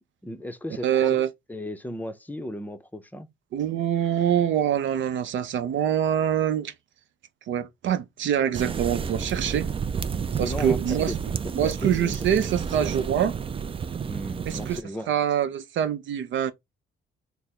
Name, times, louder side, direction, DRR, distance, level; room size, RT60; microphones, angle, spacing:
voice 1, 0.2-1.2 1.5-3.3 8.8-9.5 10.3-12.5 14.0-15.1, left 1 dB, 10° left, 0.6 m, -36 dB
voice 2, 0.8-1.3 3.5-6.7 7.5-9.7 10.4-11.1 11.5-13.4 14.5-14.8 15.1-16.5, right 9 dB, 70° right, 0.6 m, -25 dB
sound 1, 8.5-14.8, right 6 dB, 30° right, 0.4 m, -30 dB
3.5 x 2.0 x 4.2 m
cardioid pair, 90°, 20 cm